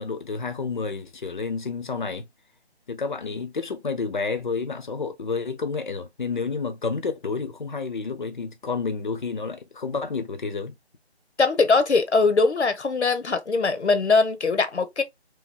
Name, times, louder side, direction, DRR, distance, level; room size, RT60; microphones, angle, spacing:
voice 1, 0.0-2.3 2.9-10.7, left 4 dB, 45° left, 0.9 m, -30 dB
voice 2, 11.4-15.0, left 4 dB, 80° left, 1.1 m, -21 dB
3.5 x 3.1 x 3.6 m
figure-of-eight pair, 165°, 33 cm